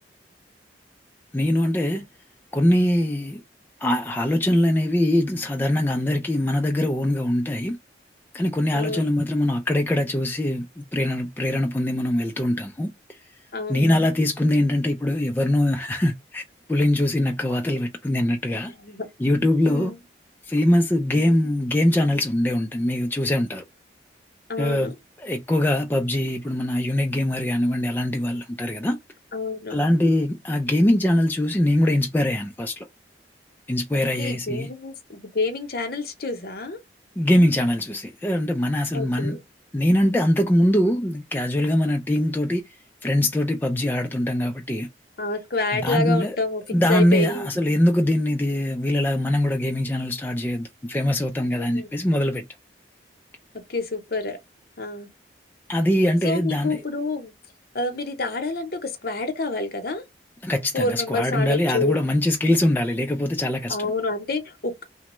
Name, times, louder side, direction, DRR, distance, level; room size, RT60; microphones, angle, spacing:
voice 1, 1.3-2.1 2.5-3.4 3.8-7.8 8.3-13.2 13.7-16.4 16.7-18.7 19.2-19.9 20.5-23.6 24.6-24.9 25.2-29.0 29.7-32.9 33.7-34.7 37.2-39.4 39.7-42.7 43.0-44.9 45.7-46.4 46.7-52.4 55.7-56.8 60.4-63.9, left 1 dB, 10° left, 0.3 m, -22 dB
voice 2, 8.7-9.1 13.5-13.9 18.7-19.1 19.7-20.0 21.1-21.3 24.5-24.9 29.3-29.8 33.9-36.8 38.9-39.4 45.2-46.6 46.9-47.5 51.6-51.9 53.7-54.4 54.8-55.1 56.2-57.3 57.7-60.0 60.7-62.0 63.7-64.8, left 3 dB, 55° left, 0.8 m, -28 dB
3.0 x 2.1 x 3.0 m
head